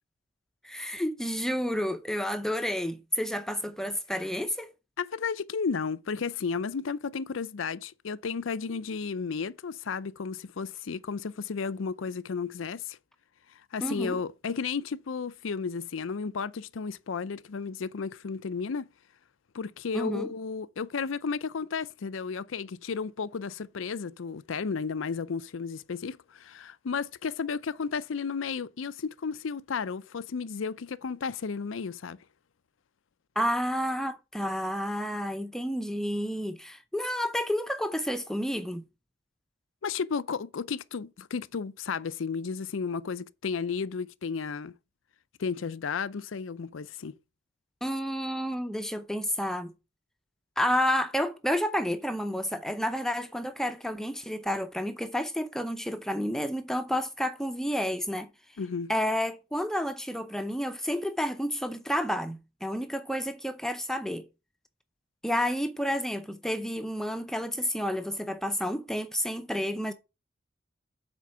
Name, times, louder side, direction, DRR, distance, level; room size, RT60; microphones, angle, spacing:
voice 1, 0.6-4.7 13.8-14.2 19.9-20.3 33.4-38.8 47.8-49.7 50.6-58.3 58.9-64.3 65.2-69.9, equal, ahead, 0.7 m, -30 dB
voice 2, 5.0-13.0 13.5-18.9 19.5-32.2 39.8-44.7 45.4-47.1 58.6-58.9, left 5 dB, 85° left, 0.5 m, -33 dB
7.6 x 4.5 x 6.8 m
head